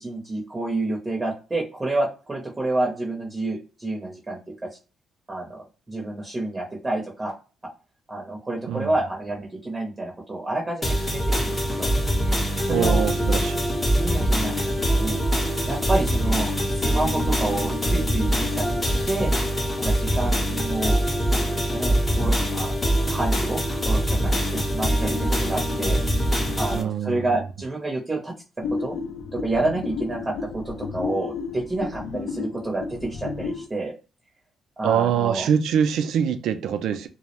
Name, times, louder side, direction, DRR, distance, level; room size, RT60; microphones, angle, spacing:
voice 1, 0.0-4.7 5.3-7.3 8.1-11.9 12.6-13.0 13.3-13.4 13.9-15.2 15.7-18.7 19.1-19.4 19.8-21.0 21.2-22.7 23.1-23.6 23.9-26.0 26.6-28.3 28.8-29.0 29.3-33.9 34.8-35.5, right 2 dB, 20° right, 0.6 m, -29 dB
sound 1, 10.8-26.8, equal, 20° left, 0.6 m, -23 dB
voice 2, 12.7-13.7 26.7-27.3 34.8-37.1, right 8 dB, 80° right, 0.3 m, -24 dB
sound 2, 28.6-33.7, left 5 dB, 80° left, 0.4 m, -32 dB
2.2 x 2.0 x 2.9 m
cardioid pair, 90°, 0 cm